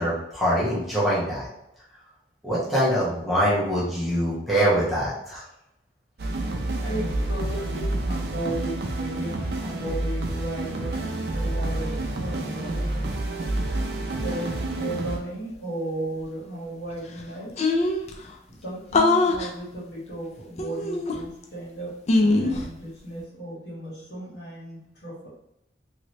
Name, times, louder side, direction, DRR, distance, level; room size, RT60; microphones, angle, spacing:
voice 1, 0.0-1.5 2.4-5.4, equal, ahead, -9 dB, 1.0 m, -24 dB
sound 1, 6.2-15.2, right 2 dB, 60° right, 0.5 m, -29 dB
voice 2, 6.7-11.9 12.2-12.9 14.2-17.6 18.5-25.3, right 1 dB, 65° left, -6 dB, 1.4 m, -35 dB
sound 2, 16.9-17.0 17.2-17.3 17.6-18.1 18.9-19.5 20.6-21.4 22.1-22.7, left 2 dB, 40° left, 0.4 m, -22 dB
2.9 x 2.7 x 3.0 m, 0.82 s
head